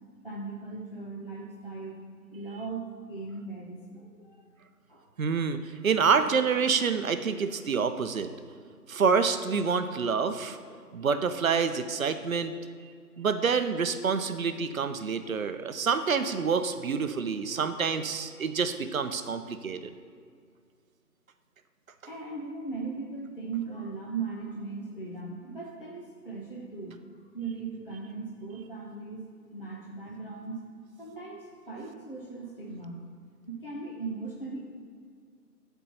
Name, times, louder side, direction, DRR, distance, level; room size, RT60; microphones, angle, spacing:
voice 1, 0.2-2.0 2.3-4.5 4.9-5.0 5.3-5.4 22.1-27.0 27.3-30.7 31.0-33.1 33.5-34.6, right 4 dB, 40° left, -2 dB, 0.5 m, -38 dB
voice 2, 5.2-5.6 5.8-8.3 8.9-10.6 10.9-12.5 13.2-19.9, right 5 dB, 60° right, 10 dB, 0.5 m, -27 dB
8.2 x 4.4 x 4.2 m, 2.1 s
figure-of-eight pair, 165°, 47 cm